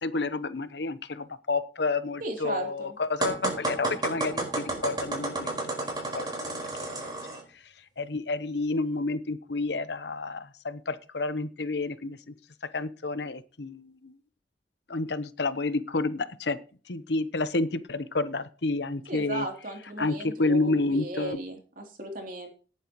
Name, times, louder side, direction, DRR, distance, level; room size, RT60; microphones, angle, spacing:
voice 1, 0.0-5.6 6.1-6.4 6.8-7.1 8.0-12.2 12.7-14.1 14.9-16.6 16.9-19.5 20.0-21.4, left 3 dB, 70° left, 0.9 m, -30 dB
voice 2, 2.2-3.0 19.1-22.5, right 1 dB, 50° right, 3.1 m, -36 dB
sound 1, 3.2-7.4, right 2 dB, 25° right, 4.7 m, -31 dB
18.0 x 8.9 x 3.1 m
head